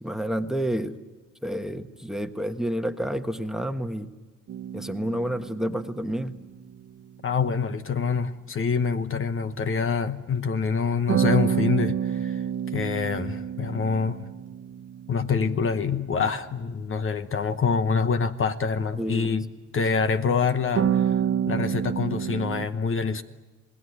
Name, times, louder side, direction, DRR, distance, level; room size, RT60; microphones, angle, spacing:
voice 1, 0.0-1.0 1.4-4.1 4.7-6.4 19.0-19.4, equal, ahead, 1.3 m, -29 dB
harp chords, 4.5-6.8 11.1-15.9 20.7-22.7, right 9 dB, 55° right, 0.8 m, -28 dB
voice 2, 7.2-12.4 12.7-14.2 15.1-21.2 21.5-23.2, left 5 dB, 45° left, 1.1 m, -26 dB
27.5 x 19.0 x 9.6 m
cardioid pair, 90°, 30 cm